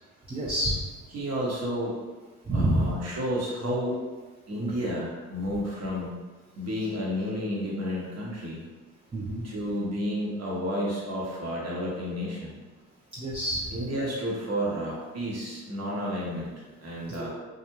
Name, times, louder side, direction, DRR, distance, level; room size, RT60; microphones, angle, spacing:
voice 1, 0.3-0.8 2.5-2.9 9.1-9.4 13.2-13.6 17.2-17.3, right 1 dB, 15° right, -5 dB, 0.5 m, -27 dB
voice 2, 1.1-1.9 2.5-3.9 4.5-6.1 6.5-8.6 9.4-12.6 13.7-16.5 16.8-17.3, equal, 50° right, -5 dB, 1.1 m, -31 dB
2.4 x 2.4 x 3.0 m, 1.3 s
supercardioid pair, 60°, 34 cm